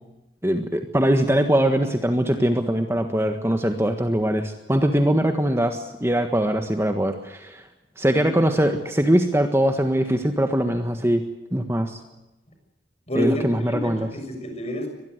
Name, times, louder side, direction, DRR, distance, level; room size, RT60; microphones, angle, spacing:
voice 1, 0.4-7.6 8.0-11.2 11.5-12.0 13.1-14.1, right 1 dB, 15° right, 6 dB, 1.5 m, -22 dB
voice 2, 13.1-13.4 13.7-14.9, left 1 dB, 35° left, 5 dB, 6.9 m, -28 dB
24.0 x 20.0 x 8.1 m, 1.0 s
head